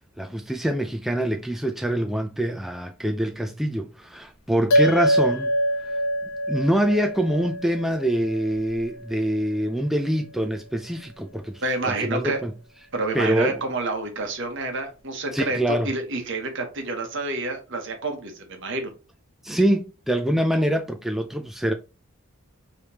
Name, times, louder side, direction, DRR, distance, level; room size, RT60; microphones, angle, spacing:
voice 1, 0.2-5.5 6.5-12.5 13.1-13.6 15.3-15.9 19.4-21.7, right 1 dB, ahead, 0.3 m, -25 dB
sound 1, 4.7-9.4, equal, 75° left, 1.2 m, -25 dB
voice 2, 11.6-12.4 12.9-18.9, right 3 dB, 60° right, 1.2 m, -28 dB
5.1 x 3.2 x 2.9 m
head